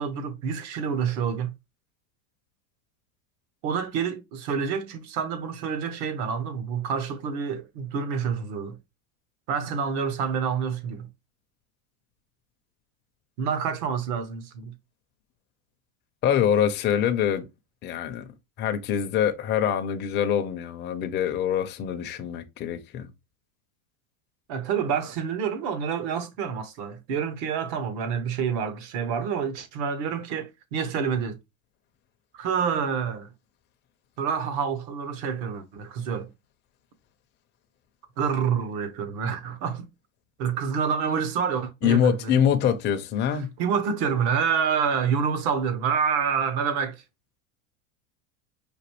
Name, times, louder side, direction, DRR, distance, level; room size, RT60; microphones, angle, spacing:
voice 1, 0.0-1.5 3.6-8.8 9.5-11.1 13.4-14.7 24.5-31.4 32.3-33.3 34.2-36.3 38.2-39.9 40.4-42.4 43.6-47.0, right 6 dB, 55° right, 1.1 m, -28 dB
voice 2, 16.2-17.4 17.8-18.3 18.6-23.1 41.8-43.5, left 9 dB, 25° left, 0.5 m, -24 dB
5.1 x 2.6 x 2.9 m
supercardioid pair, 130°, 42 cm